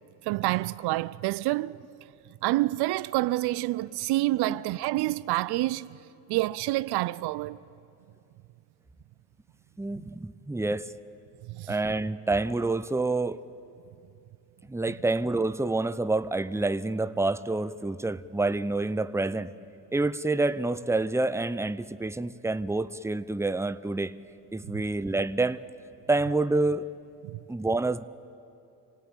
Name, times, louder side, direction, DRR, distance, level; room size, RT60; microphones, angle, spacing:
voice 1, 0.3-1.8 2.4-6.0 6.3-7.6 11.5-11.7 24.7-24.8 27.2-27.4, right 18 dB, 85° right, 0.5 m, -28 dB
voice 2, 9.8-10.9 11.7-13.4 14.7-19.5 19.9-24.1 24.5-25.6 26.1-26.9 27.5-28.0, right 2 dB, 5° right, 0.7 m, -28 dB
26.5 x 17.5 x 8.9 m
supercardioid pair, 65°, 38 cm